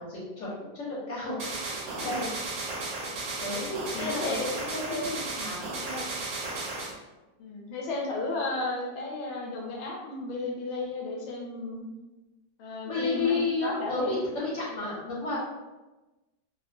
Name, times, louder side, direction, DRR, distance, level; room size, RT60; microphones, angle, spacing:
voice 1, 0.0-2.4 3.1-3.2 3.4-4.3 4.7-6.0 12.8-15.4, left 3 dB, 45° left, -8 dB, 1.4 m, -32 dB
sound 1, 1.4-6.9, right 3 dB, 75° right, 1.3 m, -34 dB
voice 2, 4.0-4.5 4.9-5.2 7.4-11.9 12.6-14.2 15.0-15.2, left 3 dB, 90° left, -1 dB, 1.4 m, -34 dB
3.3 x 2.1 x 2.5 m, 1.1 s
omnidirectional pair, 2.1 m